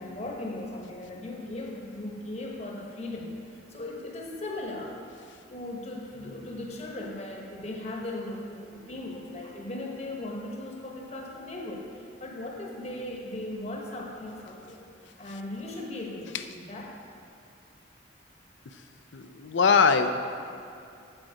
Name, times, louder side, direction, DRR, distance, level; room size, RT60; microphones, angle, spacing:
voice 1, 0.0-3.3 3.7-5.0 5.5-14.8 15.2-17.0, left 1 dB, 35° left, -1 dB, 1.1 m, -38 dB
voice 2, 19.1-20.1, left 5 dB, 75° left, 9 dB, 0.5 m, -22 dB
8.0 x 7.8 x 4.9 m, 2.5 s
head